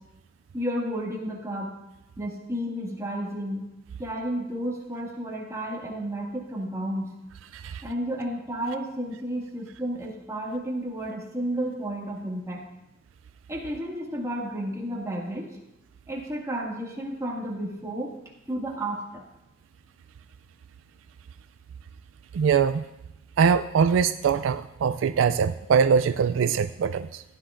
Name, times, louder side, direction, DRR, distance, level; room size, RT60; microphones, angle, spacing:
voice 1, 0.5-1.7 2.2-3.7 4.0-7.1 7.8-12.6 13.5-15.5 16.1-18.1 18.5-19.2, right 1 dB, 15° right, -3 dB, 2.0 m, -32 dB
voice 2, 22.3-22.8 23.4-27.2, right 6 dB, 75° right, 11 dB, 0.3 m, -22 dB
16.0 x 10.0 x 2.5 m, 0.91 s
head